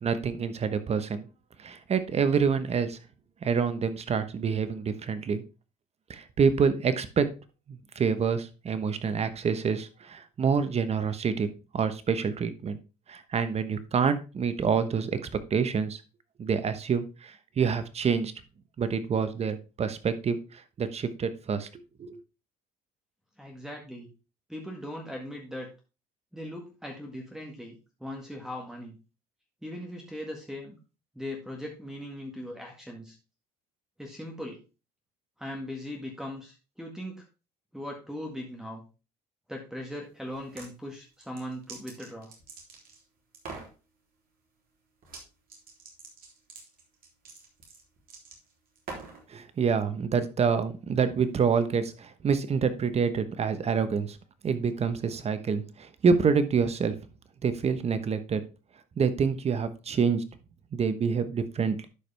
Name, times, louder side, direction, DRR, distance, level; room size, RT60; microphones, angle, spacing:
voice 1, 0.0-1.3 1.6-3.0 3.4-5.4 6.1-7.3 7.7-12.8 13.1-15.2 15.5-16.0 16.4-18.3 18.8-22.2 49.3-54.2 54.4-57.0 57.4-58.4 59.0-60.2 60.7-61.9, right 6 dB, 35° right, 12 dB, 1.1 m, -27 dB
voice 2, 23.4-24.1 24.5-25.7 26.3-27.7 28.0-29.0 29.6-30.8 31.2-33.2 34.0-34.6 35.4-37.3 37.7-38.8 39.5-42.3, left 1 dB, 5° right, 0 dB, 1.8 m, -39 dB
sound 1, 40.3-40.7 41.2-43.0 43.3-43.7 45.0-45.2 45.5-49.2, right 4 dB, 50° right, 3.3 m, -44 dB
11.5 x 5.0 x 3.5 m, 0.31 s
supercardioid pair, 100°, 18 cm